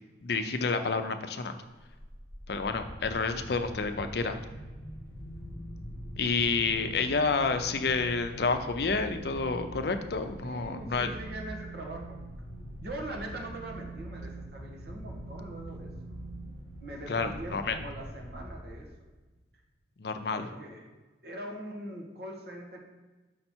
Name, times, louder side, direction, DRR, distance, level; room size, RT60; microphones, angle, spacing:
voice 1, 0.2-1.6 2.5-4.4 6.2-11.1 17.1-17.8 20.0-20.5, left 4 dB, 60° left, 8 dB, 0.5 m, -29 dB
sound 1, 1.6-19.0, right 1 dB, 25° right, 2.4 m, -43 dB
voice 2, 10.4-12.2 12.8-16.2 16.8-18.9 20.3-20.9 21.2-22.8, right 1 dB, 55° right, 0 dB, 1.5 m, -42 dB
6.5 x 5.5 x 4.4 m, 1.2 s
head